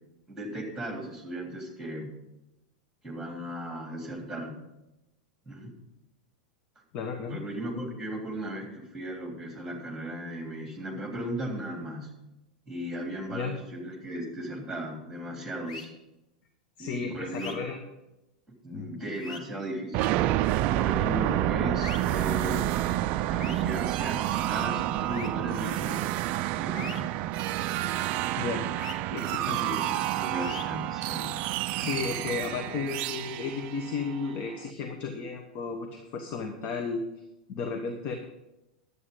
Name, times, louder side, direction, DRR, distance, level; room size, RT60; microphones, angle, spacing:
voice 1, 0.3-2.1 3.0-4.5 5.5-5.7 7.3-12.1 12.7-15.9 16.8-17.6 18.6-20.1 20.6-22.7 23.3-26.0 26.6-27.1 29.4-31.3, right 1 dB, 5° right, 1 dB, 3.2 m, -36 dB
voice 2, 6.9-7.4 13.3-13.5 16.8-17.8 18.7-18.9 28.4-28.7 29.1-29.8 31.8-37.0 37.5-38.2, left 5 dB, 40° left, 5 dB, 1.2 m, -34 dB
sound 1, 15.7-15.9 17.3-17.5 19.1-19.4 21.8-22.0 23.4-23.6 25.1-25.3 26.7-27.0 28.8-29.0 30.3-30.6, left 4 dB, 75° left, 1.3 m, -40 dB
sound 2, 19.9-34.6, right 14 dB, 40° right, 0.3 m, -29 dB
11.0 x 8.3 x 5.4 m, 0.94 s
figure-of-eight pair, 90°, 4 cm